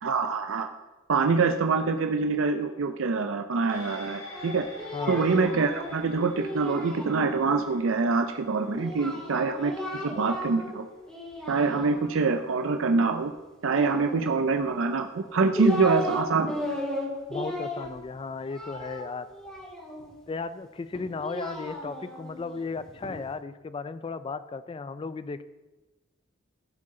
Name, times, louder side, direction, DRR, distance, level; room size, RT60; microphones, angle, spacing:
voice 1, 0.0-0.7 1.1-4.7 5.1-9.7 10.0-10.8 11.5-13.3 13.6-16.8, right 4 dB, 70° right, 6 dB, 0.5 m, -25 dB
sound 1, 3.7-12.4 12.8-12.9, left 2 dB, 80° left, 3.7 m, -47 dB
Singing, 4.3-7.6 8.7-10.8 11.1-12.3 13.7-14.6 15.2-16.2 16.5-20.1 20.9-23.1, left 1 dB, 5° left, 3.3 m, -36 dB
voice 2, 4.9-5.3 17.3-19.3 20.3-25.4, left 4 dB, 25° left, 13 dB, 0.3 m, -35 dB
15.0 x 7.7 x 3.8 m, 1.1 s
head